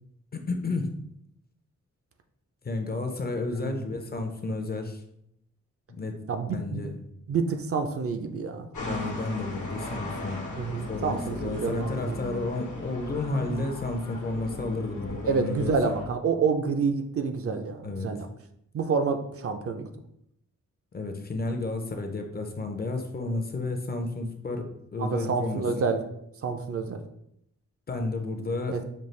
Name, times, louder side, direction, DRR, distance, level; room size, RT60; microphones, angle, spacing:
voice 1, 0.3-1.0 2.6-5.0 6.0-6.2 6.5-7.0 8.9-10.4 10.9-15.9 17.8-18.1 20.9-25.8 27.9-28.8, left 3 dB, 35° left, 5 dB, 0.5 m, -32 dB
voice 2, 6.3-6.9 7.3-8.7 10.6-12.2 15.3-18.3 18.7-19.9 25.0-26.0 26.4-27.0 28.7-28.8, right 5 dB, 50° right, 6 dB, 0.4 m, -28 dB
sound 1, 8.7-16.1, left 2 dB, 90° left, 1.1 m, -37 dB
5.2 x 2.3 x 3.1 m, 0.75 s
wide cardioid pair, 120°, 29 cm